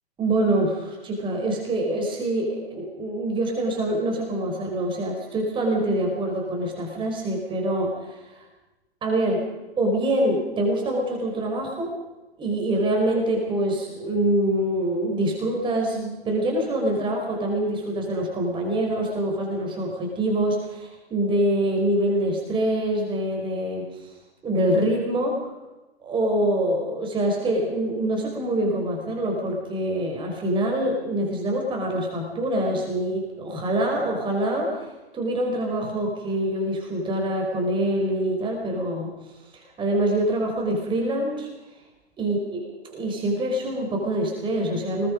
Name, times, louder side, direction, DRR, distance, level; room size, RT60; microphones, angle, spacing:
voice 1, 0.2-8.2 9.0-9.4 9.8-11.9 12.4-23.8 24.4-25.5 26.0-34.9 35.1-39.1 39.5-41.5 42.2-42.6 42.9-45.1, right 1 dB, 15° right, 0 dB, 5.0 m, -25 dB
27.5 x 21.0 x 5.3 m, 1.1 s
figure-of-eight pair, 120°, 31 cm